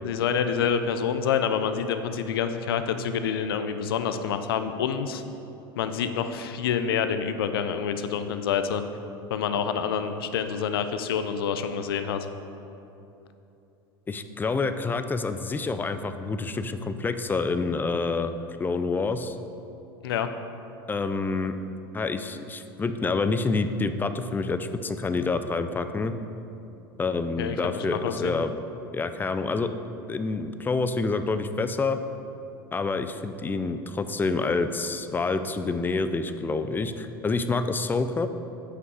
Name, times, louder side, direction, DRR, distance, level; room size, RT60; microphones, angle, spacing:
voice 1, 0.0-5.2 5.8-8.8 9.3-12.3 20.0-20.3 27.4-28.4, left 7 dB, 80° left, 9 dB, 0.5 m, -27 dB
voice 2, 14.1-18.3 18.6-19.4 20.9-21.6 21.9-26.1 27.0-28.5 28.9-29.7 30.1-32.0 32.7-38.3, left 3 dB, 15° left, 10 dB, 0.4 m, -27 dB
8.3 x 5.5 x 4.8 m, 2.8 s
hypercardioid pair, 90°, 12 cm